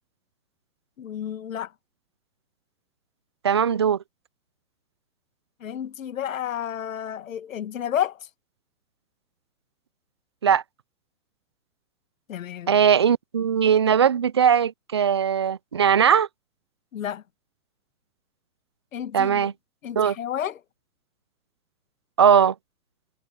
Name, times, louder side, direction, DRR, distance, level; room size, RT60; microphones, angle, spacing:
voice 1, 1.0-1.7 5.6-8.2 12.3-12.7 16.9-17.2 18.9-19.5 19.8-20.6, left 10 dB, 60° left, 1.7 m, -31 dB
voice 2, 3.4-4.0 10.4-10.6 12.7-16.3 19.1-19.5 20.0-20.2 22.2-22.5, right 8 dB, 20° right, 0.3 m, -19 dB
figure-of-eight pair, 120°, 44 cm